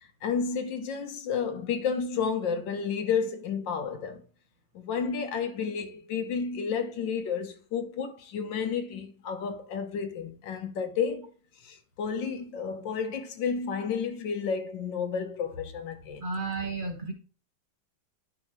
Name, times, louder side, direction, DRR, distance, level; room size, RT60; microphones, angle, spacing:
voice 1, 0.2-4.2 4.7-11.3 11.6-16.2, left 6 dB, 80° left, 1.6 m, -31 dB
voice 2, 16.2-17.1, right 4 dB, 35° right, 0.9 m, -32 dB
10.5 x 4.9 x 3.1 m
omnidirectional pair, 2.0 m